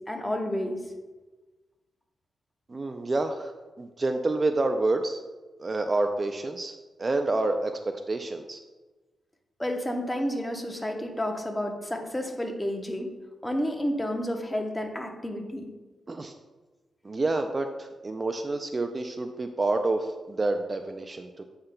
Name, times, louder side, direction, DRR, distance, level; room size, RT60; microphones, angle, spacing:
voice 1, 0.1-0.8 9.6-13.1 13.4-15.7, equal, 10° left, 3 dB, 0.8 m, -30 dB
voice 2, 2.7-3.5 3.8-5.2 5.6-8.6 16.1-16.3 17.0-21.4, right 2 dB, 30° right, 6 dB, 0.3 m, -28 dB
7.8 x 5.7 x 2.2 m, 1.2 s
cardioid pair, 105°, 0 cm